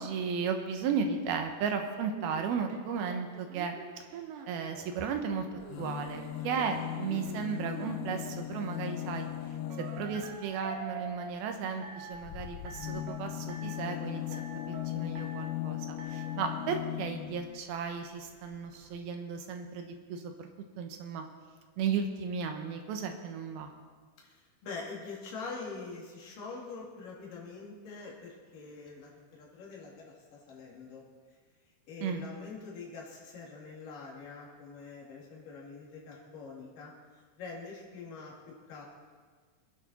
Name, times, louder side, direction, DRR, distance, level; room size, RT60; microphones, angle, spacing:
voice 1, 0.0-3.8 4.5-5.5 5.8-9.3 9.8-14.2 14.7-20.5 20.8-21.3 21.8-23.7 32.0-32.3, right 6 dB, 80° right, 5 dB, 3.1 m, -35 dB
sound 1, 2.0-4.9 5.5-8.4 9.7-11.4 11.8-12.3 12.7-13.2 13.5-14.0 14.3-14.9 15.2-15.6 16.0-16.5, right 6 dB, 65° right, 2.4 m, -45 dB
sound 2, 5.6-10.5 12.1-17.6 18.5-18.6 18.8-18.9, left 14 dB, 80° left, 2.3 m, -38 dB
voice 2, 24.2-31.0 31.9-36.9 37.4-38.4 38.7-38.8, left 4 dB, 60° left, -3 dB, 4.1 m, -44 dB
22.0 x 10.0 x 4.5 m, 1.5 s
omnidirectional pair, 4.5 m